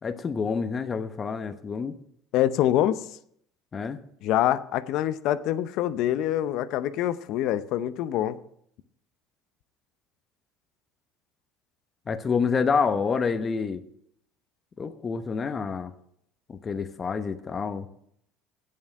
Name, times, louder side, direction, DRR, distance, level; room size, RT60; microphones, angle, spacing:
voice 1, 0.0-1.9 3.7-4.0 12.1-13.8 14.8-15.9 16.5-17.9, left 5 dB, 30° left, 9 dB, 0.9 m, -28 dB
voice 2, 2.3-3.1 4.2-8.4, left 12 dB, 65° left, 15 dB, 0.7 m, -25 dB
8.8 x 7.4 x 8.6 m, 0.70 s
supercardioid pair, 95°, 0 cm